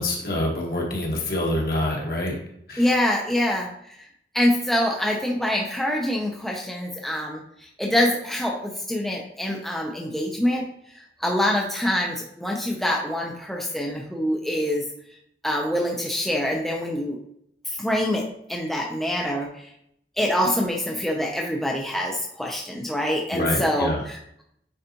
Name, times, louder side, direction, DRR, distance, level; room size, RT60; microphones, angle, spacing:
voice 1, 0.0-2.3 2.7-2.8 23.3-24.0, left 1 dB, 55° left, -1 dB, 1.5 m, -26 dB
voice 2, 2.8-3.7 4.3-7.4 7.8-10.6 11.2-14.8 15.4-17.2 17.8-18.2 18.5-19.5 20.2-24.4, left 1 dB, ahead, -2 dB, 0.6 m, -25 dB
8.7 x 4.0 x 3.0 m, 0.71 s
head